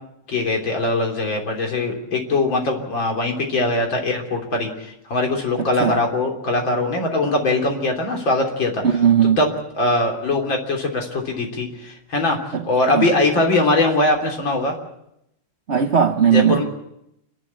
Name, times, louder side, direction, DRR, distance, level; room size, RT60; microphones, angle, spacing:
voice 1, 0.3-8.8 9.4-12.4 12.6-14.8 16.2-16.6, left 2 dB, 60° left, 4.1 m, -21 dB
voice 2, 8.8-9.4 12.5-12.6 12.9-13.1 15.7-16.6, right 8 dB, 70° right, 0.6 m, -17 dB
28.5 x 11.5 x 8.5 m
omnidirectional pair, 2.4 m